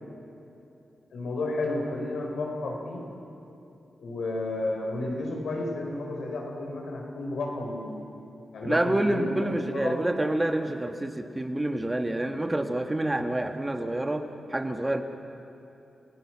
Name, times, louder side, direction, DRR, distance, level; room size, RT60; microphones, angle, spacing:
voice 1, 1.1-3.0 4.0-8.0 8.5-10.1, left 2 dB, 80° left, -1 dB, 4.7 m, -32 dB
voice 2, 8.6-15.0, right 1 dB, 20° right, 6 dB, 1.6 m, -28 dB
29.0 x 17.0 x 6.2 m, 2.8 s
cardioid pair, 55°, 0 cm